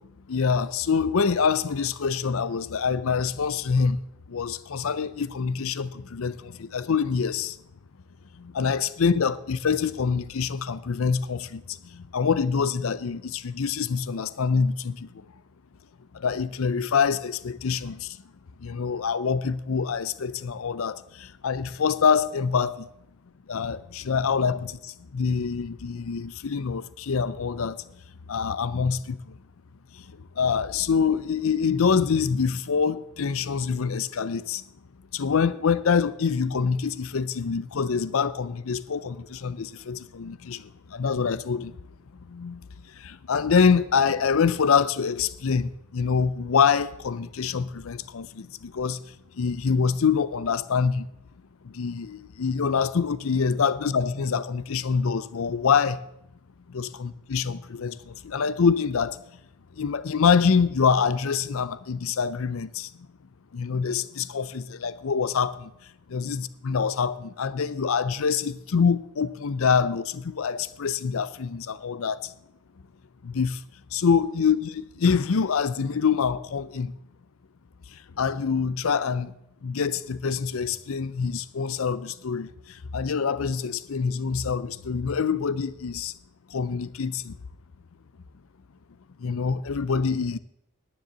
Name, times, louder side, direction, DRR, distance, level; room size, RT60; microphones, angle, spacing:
voice 1, 0.3-4.0 4.3-7.5 8.5-11.6 12.1-15.0 16.2-18.0 18.6-21.0 21.4-22.7 23.5-24.7 25.1-27.8 28.3-29.2 30.4-34.6 35.1-40.6 40.9-41.7 42.3-42.6 43.0-48.5 48.7-49.0 49.4-51.0 51.8-56.0 56.7-58.0 58.2-59.2 59.8-62.9 63.5-65.5 66.1-72.2 73.3-73.6 73.9-76.9 78.2-79.3 79.6-82.5 82.9-86.1 86.5-87.3 89.2-90.4, left 6 dB, 65° left, 0.5 m, -25 dB
10.0 x 9.6 x 7.9 m
head